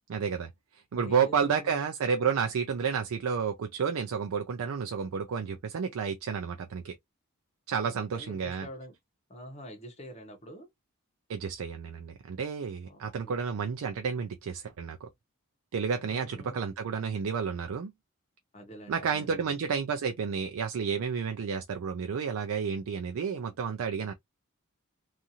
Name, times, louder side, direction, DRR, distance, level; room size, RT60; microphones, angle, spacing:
voice 1, 0.1-0.5 0.9-7.0 7.7-8.7 11.3-15.1 15.7-17.9 18.9-24.1, right 6 dB, 75° right, 0.4 m, -31 dB
voice 2, 0.9-1.9 7.8-8.9 9.3-10.7 12.9-13.4 16.0-16.7 18.5-19.5, equal, 30° left, 0.8 m, -46 dB
2.5 x 2.5 x 2.7 m
head